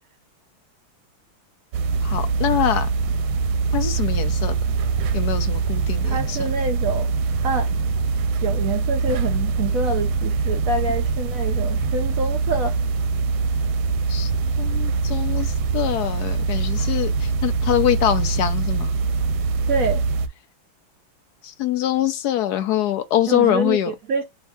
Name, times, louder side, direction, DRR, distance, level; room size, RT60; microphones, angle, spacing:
sound 1, 1.7-20.3, right 4 dB, 85° right, 1.4 m, -23 dB
voice 1, 2.0-2.9 3.7-4.5 5.1-6.4 14.1-14.3 14.6-18.9 21.4-23.9, left 11 dB, 70° left, 1.0 m, -24 dB
voice 2, 6.0-7.1 7.4-7.7 8.4-12.7 19.7-20.0 23.3-24.2, right 3 dB, 70° right, 0.8 m, -26 dB
3.6 x 3.5 x 3.4 m
omnidirectional pair, 2.3 m